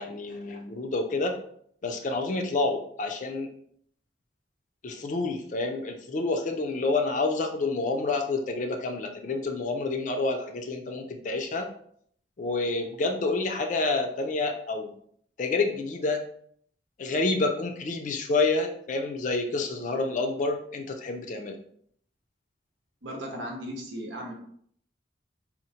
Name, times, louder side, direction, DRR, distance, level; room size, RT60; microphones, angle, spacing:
voice 1, 0.0-1.4 1.8-3.5 4.8-11.7 12.4-14.9 15.4-16.2 17.0-21.6, left 3 dB, 45° left, 4 dB, 0.4 m, -28 dB
voice 2, 23.0-24.3, equal, 90° right, 1 dB, 0.9 m, -36 dB
4.1 x 2.1 x 2.7 m, 0.65 s
head